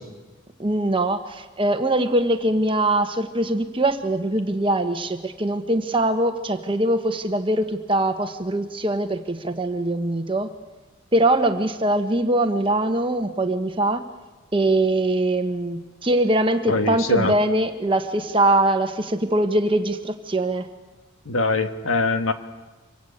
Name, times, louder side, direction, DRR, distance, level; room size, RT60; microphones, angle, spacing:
voice 1, 0.6-10.5 11.1-14.0 14.5-20.7, right 1 dB, 25° right, 7 dB, 1.3 m, -22 dB
voice 2, 16.7-17.3 21.3-22.3, left 2 dB, 70° left, 7 dB, 1.8 m, -22 dB
26.0 x 23.5 x 8.7 m, 1.2 s
head